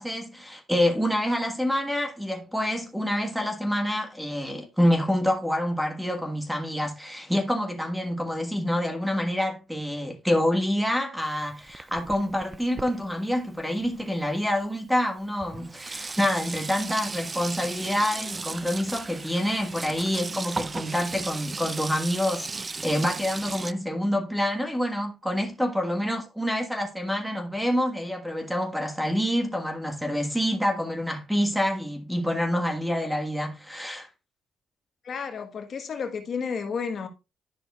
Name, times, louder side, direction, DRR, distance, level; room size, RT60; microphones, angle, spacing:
voice 1, 0.0-34.1, equal, 5° right, 1.4 m, -27 dB
Sink (filling or washing), 11.2-14.3 15.1-15.2 15.4-23.7, right 3 dB, 25° right, 0.3 m, -36 dB
voice 2, 35.0-37.1, left 6 dB, 50° left, 1.3 m, -32 dB
10.5 x 6.2 x 2.4 m
cardioid pair, 90°, 0 cm